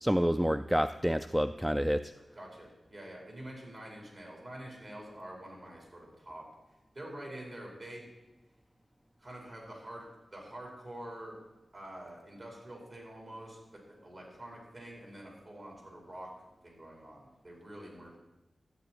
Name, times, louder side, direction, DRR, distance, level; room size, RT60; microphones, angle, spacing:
voice 1, 0.0-2.1, equal, 5° right, 10 dB, 0.3 m, -28 dB
voice 2, 2.3-6.4 6.9-8.1 9.2-11.4 11.7-16.3 16.6-18.2, right 1 dB, 50° right, -2 dB, 4.7 m, -46 dB
13.5 x 8.9 x 4.6 m, 0.99 s
wide cardioid pair, 75°, 0 cm